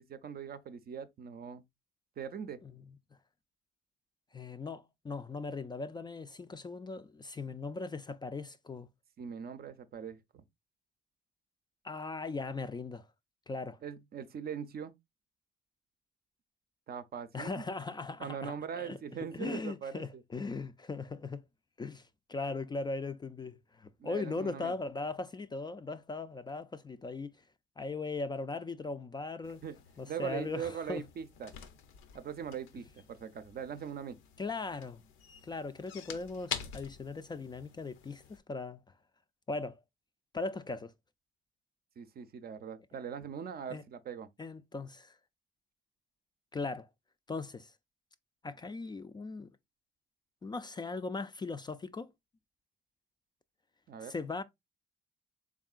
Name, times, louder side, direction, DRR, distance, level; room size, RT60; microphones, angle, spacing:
voice 1, 0.0-1.6 2.2-2.6 9.2-10.4 13.8-14.9 16.9-17.7 18.2-20.2 24.0-24.7 29.6-29.8 30.1-31.5 32.1-34.2 42.0-44.3 53.9-54.1, right 7 dB, 50° right, 0.5 m, -41 dB
voice 2, 4.3-8.9 11.8-13.1 13.5-13.8 17.3-19.0 19.3-21.4 21.8-27.3 27.8-29.6 30.0-31.0 34.4-35.0 35.4-38.8 39.5-39.8 40.3-40.9 43.7-43.8 44.4-45.2 46.5-46.9 47.3-47.7 48.4-49.5 50.4-52.1 54.0-54.4, left 3 dB, 20° left, 0.3 m, -39 dB
sound 1, 29.4-38.4, left 8 dB, 90° left, 0.6 m, -47 dB
3.6 x 3.6 x 2.3 m
cardioid pair, 90°, 20 cm